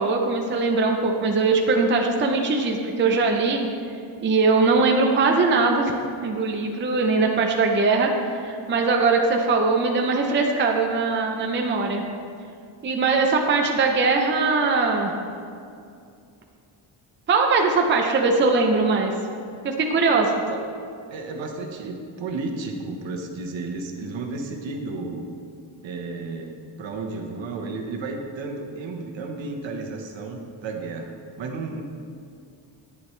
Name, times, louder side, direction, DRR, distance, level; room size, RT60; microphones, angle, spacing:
voice 1, 0.0-3.7 4.2-6.0 6.2-12.0 12.8-15.1 17.3-19.1 19.6-20.3, right 3 dB, 25° right, 1 dB, 0.6 m, -21 dB
voice 2, 20.3-20.6 21.1-25.3 25.8-31.8, right 3 dB, 65° right, 3 dB, 1.2 m, -33 dB
10.5 x 9.7 x 3.2 m, 2.4 s
wide cardioid pair, 170°, 49 cm